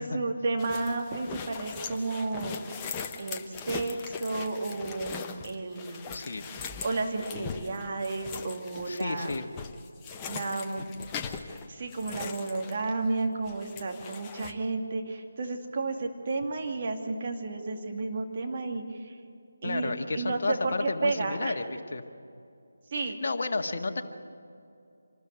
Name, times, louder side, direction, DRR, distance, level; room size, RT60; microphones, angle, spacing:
voice 1, 0.0-2.6 3.2-6.1 6.8-9.3 10.3-10.9 11.7-19.1 19.6-21.5 22.9-23.2, right 3 dB, 35° right, 2 dB, 2.4 m, -32 dB
sound 1, 0.6-13.2 13.5-14.5, left 5 dB, 15° left, 1.0 m, -40 dB
voice 2, 6.1-6.4 8.8-9.5 19.6-22.0 23.2-24.0, left 3 dB, 50° left, 4 dB, 1.7 m, -31 dB
26.0 x 13.5 x 9.5 m, 2.5 s
figure-of-eight pair, 155°, 0 cm